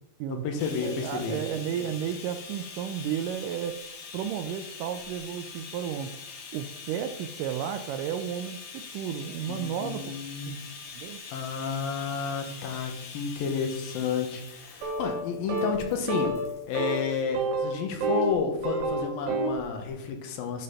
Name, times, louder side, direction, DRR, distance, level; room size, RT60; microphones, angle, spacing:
voice 1, 0.3-1.4 9.5-10.6 11.3-16.3 16.7-20.6, left 5 dB, 75° left, 4 dB, 2.7 m, -31 dB
Bathtub (filling or washing), 0.6-17.2 18.1-18.3 18.6-18.7, left 5 dB, 55° left, 2.6 m, -44 dB
voice 2, 0.8-3.8 4.1-10.2 10.5-10.6 10.9-11.2, right 9 dB, 85° right, 9 dB, 1.9 m, -33 dB
sound 1, 14.8-15.2 15.5-15.8 16.1-16.5 16.7-17.0 17.3-18.3 18.6-19.6, right 2 dB, 70° right, 1.9 m, -28 dB
10.5 x 4.0 x 5.6 m, 0.84 s
omnidirectional pair, 4.3 m